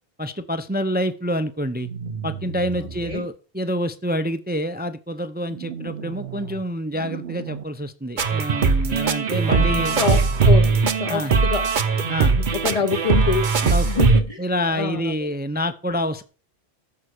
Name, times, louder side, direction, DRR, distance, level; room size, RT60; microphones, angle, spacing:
voice 1, 0.2-1.9 2.2-10.0 11.1-11.3 12.1-12.4 13.6-16.2, equal, 10° right, 0.5 m, -27 dB
sound 1, 1.7-3.2 5.5-6.6 6.9-7.6 9.4-10.6, right 7 dB, 75° right, 1.2 m, -35 dB
voice 2, 2.8-3.3 9.5-11.7 12.3-13.6 13.8-14.5 14.7-15.1, left 5 dB, 35° left, 0.9 m, -26 dB
sound 2, 8.2-14.2, right 4 dB, 50° right, 0.9 m, -19 dB
13.5 x 5.5 x 6.5 m
omnidirectional pair, 1.1 m